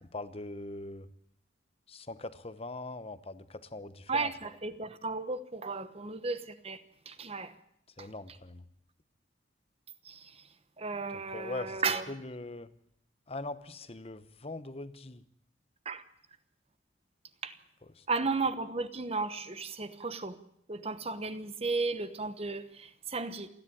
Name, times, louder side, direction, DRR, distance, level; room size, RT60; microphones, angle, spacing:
voice 1, 0.0-1.1 1.9-4.3 8.0-8.6 10.9-12.7 13.3-15.2 17.8-18.0, left 2 dB, 30° left, 1.0 m, -42 dB
voice 2, 4.1-6.8 7.1-7.5 10.8-12.0 15.9-16.0 17.4-17.5 18.1-20.3 20.7-22.6 23.1-23.5, right 4 dB, 35° right, 1.1 m, -34 dB
27.5 x 10.5 x 10.0 m
head